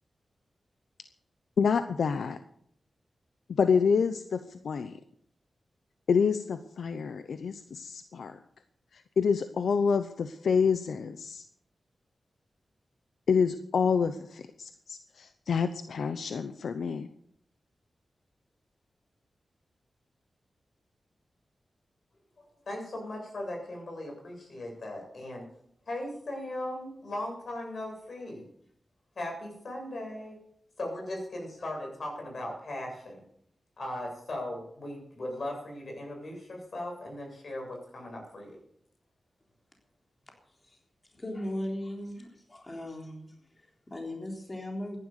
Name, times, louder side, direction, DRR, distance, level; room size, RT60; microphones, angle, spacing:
voice 1, 1.6-2.4 3.5-5.0 6.1-8.4 8.9-11.4 13.3-17.1, left 6 dB, 90° left, 10 dB, 0.7 m, -28 dB
voice 2, 22.4-25.5 25.9-28.4 29.2-30.4 30.8-33.2 33.8-38.6, left 1 dB, 60° left, 1 dB, 7.5 m, -38 dB
voice 3, 40.5-40.8 41.1-45.0, left 1 dB, 30° left, 1 dB, 3.7 m, -38 dB
15.0 x 11.0 x 6.6 m, 0.67 s
cardioid pair, 70°, 0 cm